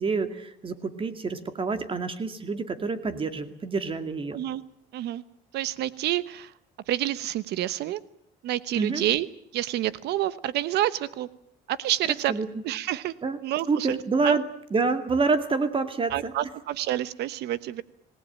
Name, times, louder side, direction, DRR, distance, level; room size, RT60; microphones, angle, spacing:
voice 1, 0.0-4.4 8.7-9.0 12.3-12.5 13.2-13.4 13.7-14.4 14.7-16.3, right 4 dB, 30° right, 9 dB, 2.3 m, -27 dB
voice 2, 4.3-4.6 4.9-5.2 5.5-6.5 6.9-8.0 8.4-9.3 9.5-11.3 11.7-12.3 12.6-13.1 13.4-14.4 16.1-17.8, right 13 dB, 75° right, 15 dB, 1.0 m, -28 dB
26.5 x 19.0 x 8.9 m, 0.72 s
cardioid pair, 110°, 17 cm